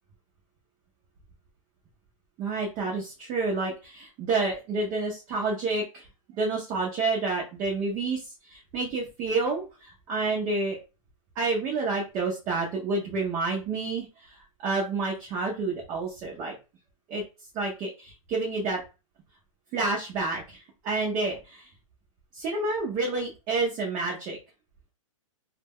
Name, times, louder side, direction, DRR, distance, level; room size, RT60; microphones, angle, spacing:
voice 1, 2.4-6.1 6.4-10.8 11.4-16.5 17.1-17.2 17.5-18.8 19.7-21.7 22.3-24.4, right 3 dB, 15° right, -3 dB, 0.4 m, -29 dB
2.2 x 2.1 x 3.4 m, 0.30 s
hypercardioid pair, 165°, 17 cm